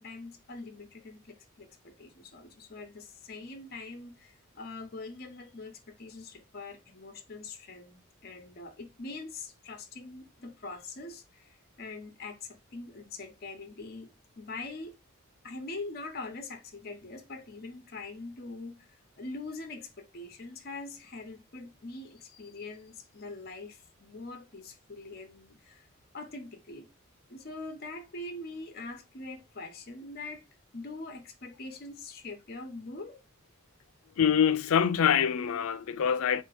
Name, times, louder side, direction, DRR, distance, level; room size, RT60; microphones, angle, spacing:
voice 1, 0.0-14.1 14.4-14.9 15.4-25.9 26.1-26.9 27.3-30.4 30.7-33.2, left 3 dB, 45° left, 0.7 m, -43 dB
voice 2, 34.2-36.4, left 8 dB, 85° left, 0.4 m, -25 dB
3.8 x 2.8 x 4.8 m
head